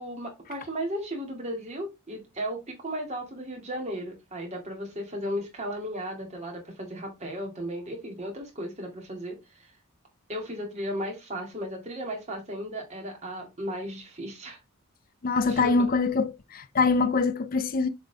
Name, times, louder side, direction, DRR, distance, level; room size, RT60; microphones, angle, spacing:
voice 1, 0.0-9.7 10.3-14.6 15.5-15.9, equal, 30° right, 2.4 m, -35 dB
voice 2, 15.2-17.9, left 4 dB, 40° left, 0.4 m, -24 dB
7.1 x 3.8 x 3.5 m
head